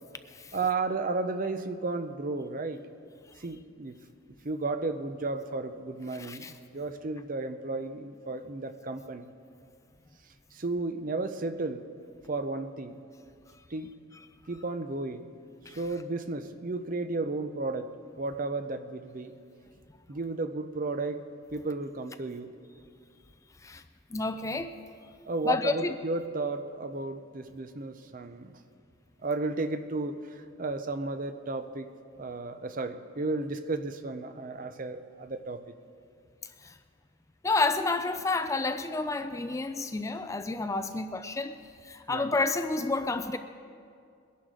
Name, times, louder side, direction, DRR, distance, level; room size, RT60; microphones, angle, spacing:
voice 1, 0.5-2.9 3.4-4.0 4.4-9.3 10.5-11.9 12.3-13.0 13.7-13.9 14.5-15.3 15.7-19.4 20.1-21.3 21.5-22.5 25.3-28.6 29.2-31.9 32.2-35.6 42.1-42.3, right 3 dB, 40° right, 10 dB, 0.6 m, -33 dB
voice 2, 6.2-6.5 15.7-15.8 23.6-23.8 24.1-24.7 25.5-26.0 36.6-36.7 37.4-43.4, left 3 dB, 15° left, 9 dB, 0.3 m, -30 dB
22.0 x 11.0 x 3.8 m, 2.3 s
head